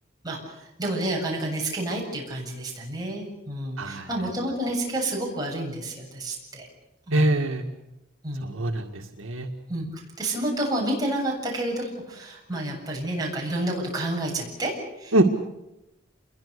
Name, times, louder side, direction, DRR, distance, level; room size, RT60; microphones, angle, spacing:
voice 1, 0.2-6.7 7.1-7.4 8.2-8.5 9.7-9.9 10.2-15.2, right 1 dB, 20° right, -2 dB, 7.6 m, -30 dB
voice 2, 3.8-4.1 7.1-7.6 8.4-9.5 15.1-15.2, right 1 dB, 85° right, 3 dB, 2.0 m, -23 dB
29.0 x 22.5 x 6.8 m, 0.93 s
head